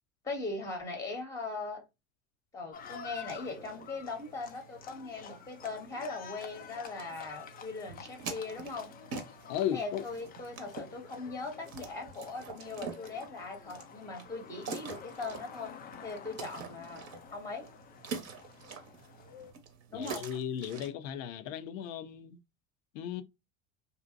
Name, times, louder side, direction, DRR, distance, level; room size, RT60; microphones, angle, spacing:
voice 1, 0.2-1.8 2.5-8.9 9.7-15.7 16.0-17.7 19.9-20.3, left 3 dB, 5° left, 0.9 m, -40 dB
Livestock farm animals working animals, 2.7-19.5, left 7 dB, 20° left, 0.4 m, -50 dB
sound 1, 2.7-20.9, right 5 dB, 35° right, 0.9 m, -47 dB
voice 2, 9.5-10.0 19.9-22.4 22.9-23.2, left 10 dB, 65° left, 0.6 m, -35 dB
2.6 x 2.1 x 2.4 m
hypercardioid pair, 75°, 43 cm